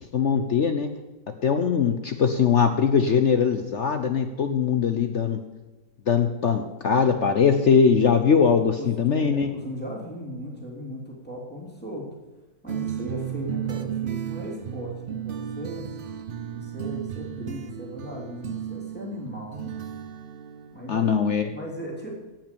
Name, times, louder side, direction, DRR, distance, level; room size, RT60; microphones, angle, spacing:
voice 1, 0.1-0.9 1.4-5.4 6.1-9.5 20.9-21.5, left 6 dB, 55° left, 7 dB, 0.8 m, -21 dB
voice 2, 8.8-12.1 12.6-15.9 16.5-19.8 20.7-22.1, equal, 5° left, -3 dB, 3.1 m, -37 dB
sound 1, 12.7-21.1, right 10 dB, 85° right, 0.4 m, -34 dB
16.5 x 6.0 x 6.9 m, 1.1 s
omnidirectional pair, 1.9 m